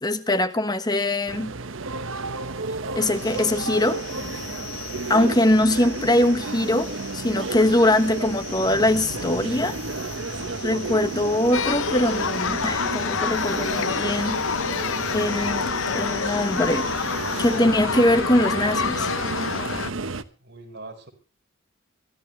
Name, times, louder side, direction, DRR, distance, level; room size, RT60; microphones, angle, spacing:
voice 1, 0.0-1.5 2.9-4.0 5.1-9.8 10.6-14.5 15.1-16.9 17.4-19.1, left 1 dB, 20° left, 1.2 m, -22 dB
sound 1, 1.3-20.2, right 3 dB, 80° right, 1.1 m, -32 dB
sound 2, 3.1-17.6, left 6 dB, 60° left, 6.5 m, -40 dB
voice 2, 11.1-11.5 20.4-21.1, right 2 dB, 60° right, 4.4 m, -42 dB
sound 3, 11.5-19.9, left 6 dB, 80° left, 0.8 m, -27 dB
23.5 x 13.0 x 3.2 m
head